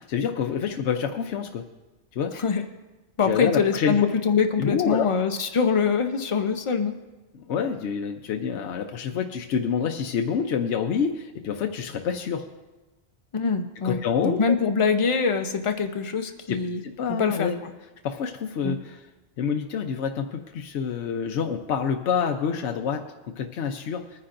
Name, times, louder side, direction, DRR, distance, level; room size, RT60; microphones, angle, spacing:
voice 1, 0.0-1.6 2.1-2.3 3.2-3.9 4.6-5.1 7.3-12.4 13.8-14.5 16.5-17.6 18.0-19.0 19.4-23.0 23.4-24.0, left 7 dB, 70° left, 3 dB, 1.0 m, -27 dB
voice 2, 3.2-7.0 13.3-16.8 17.1-17.7 18.6-18.8, left 5 dB, 35° left, 6 dB, 0.6 m, -24 dB
21.0 x 9.8 x 2.6 m, 1.1 s
omnidirectional pair, 1.3 m